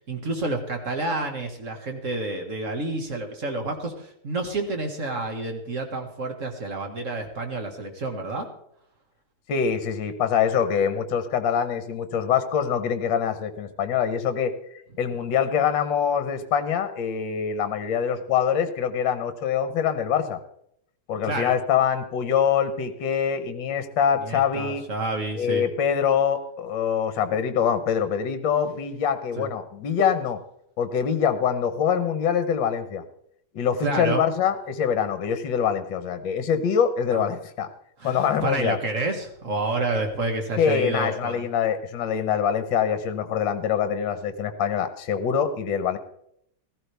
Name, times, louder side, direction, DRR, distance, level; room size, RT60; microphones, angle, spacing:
voice 1, 0.1-8.5 21.3-21.6 24.2-25.6 29.4-29.5 33.8-34.2 37.1-37.2 38.0-41.4, right 2 dB, 40° right, 4 dB, 2.0 m, -29 dB
voice 2, 9.5-14.5 15.0-20.4 21.1-24.8 25.4-30.4 30.8-33.0 33.5-37.7 38.0-38.8 40.6-46.0, left 7 dB, 65° left, 10 dB, 1.7 m, -24 dB
15.5 x 14.5 x 3.4 m, 0.71 s
omnidirectional pair, 2.3 m